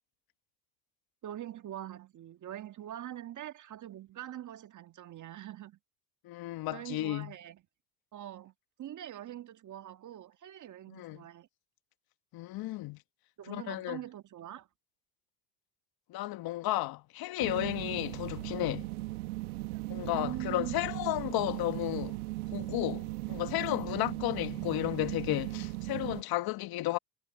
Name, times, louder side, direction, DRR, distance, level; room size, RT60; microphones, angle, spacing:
voice 1, 1.2-5.8 6.7-7.6 8.1-8.5 8.8-11.5 13.4-14.7 19.9-21.0, right 12 dB, 45° right, 1.6 m, -43 dB
voice 2, 6.2-7.3 10.9-11.2 12.3-13.0 13.5-14.0 16.1-18.9 19.9-22.2 22.5-27.0, left 17 dB, 55° left, 1.7 m, -33 dB
sound 1, 17.4-26.2, right 20 dB, 80° right, 1.5 m, -38 dB
hypercardioid pair, 80°, 43 cm